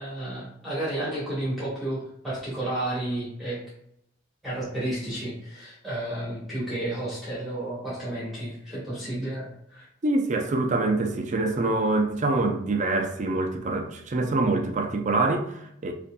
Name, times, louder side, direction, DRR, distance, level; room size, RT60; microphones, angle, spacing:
voice 1, 0.0-3.6 4.4-9.9, right 1 dB, ahead, 1.3 m, -32 dB
voice 2, 10.0-15.9, right 2 dB, 40° right, 0.5 m, -25 dB
5.3 x 2.6 x 2.2 m
head